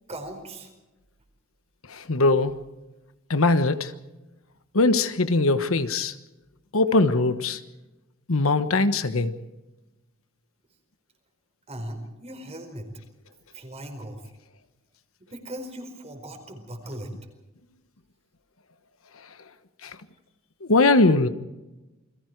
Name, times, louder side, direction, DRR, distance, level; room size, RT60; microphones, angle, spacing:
voice 1, 0.1-0.7 11.7-12.9 13.5-14.2 15.3-17.1, right 1 dB, 30° right, 4.6 m, -38 dB
voice 2, 1.9-2.5 3.3-3.9 4.7-6.1 6.7-7.6 8.3-9.3 19.8-20.0 20.6-21.3, left 2 dB, 75° left, 1.2 m, -21 dB
29.0 x 22.0 x 4.7 m
head